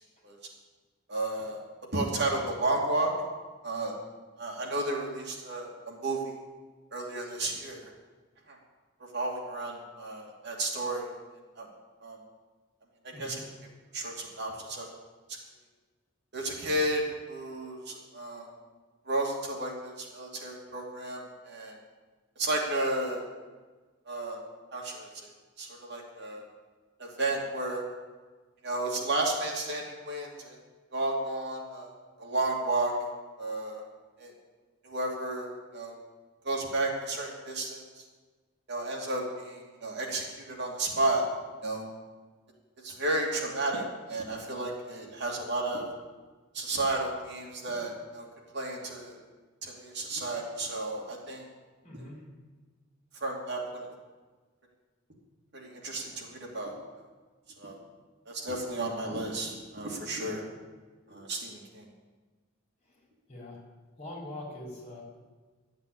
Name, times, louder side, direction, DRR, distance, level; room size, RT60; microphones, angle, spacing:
voice 1, 1.1-1.6 1.9-3.1 3.6-3.9 4.4-6.2 6.9-7.8 8.5-8.6 9.1-11.0 11.6-11.7 12.0-12.2 13.2-13.4 13.9-14.9 16.3-18.5 19.1-21.7 22.4-23.3 24.1-24.4 24.7-25.1 25.6-26.5 27.0-27.8 28.6-30.6 30.9-31.9 32.2-32.9 33.4-33.8 34.2-34.3 34.8-35.9 36.4-37.8 38.7-41.2 41.6-41.8 42.8-45.9 46.5-48.2 48.5-49.1 49.6-51.4 53.2-53.9 55.5-56.7 57.6-57.8 58.3-60.4 61.1-61.8, right 2 dB, 60° right, -1 dB, 2.6 m, -32 dB
voice 2, 13.1-13.5 51.8-52.2 62.8-63.6 64.0-65.0, left 1 dB, 35° left, -2 dB, 4.1 m, -43 dB
12.5 x 8.1 x 8.6 m, 1.3 s
head